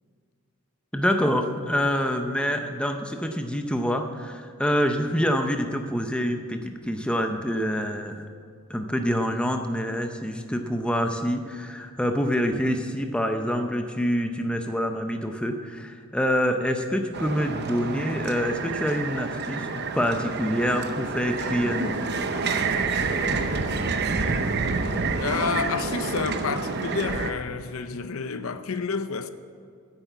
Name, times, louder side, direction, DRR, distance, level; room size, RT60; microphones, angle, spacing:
voice 1, 0.9-8.2 8.7-22.0, equal, 5° left, 0.6 m, -26 dB
sound 1, 17.1-27.3, right 4 dB, 45° right, 0.7 m, -28 dB
voice 2, 25.2-29.3, left 5 dB, 65° left, 0.6 m, -29 dB
10.0 x 8.1 x 8.2 m
head